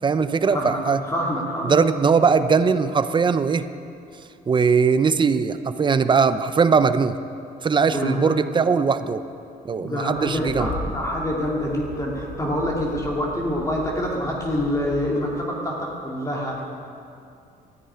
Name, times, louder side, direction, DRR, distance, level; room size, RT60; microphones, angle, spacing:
voice 1, 0.0-1.0 1.6-3.7 4.5-7.2 7.6-9.2 9.6-10.7, right 5 dB, 30° right, 11 dB, 0.7 m, -20 dB
voice 2, 0.5-1.8 7.9-8.4 9.7-16.6, equal, 20° left, -3 dB, 2.6 m, -26 dB
sound 1, 10.1-15.2, left 2 dB, 90° left, 4.5 m, -38 dB
13.5 x 9.8 x 9.6 m, 2.5 s
cardioid pair, 110°, 17 cm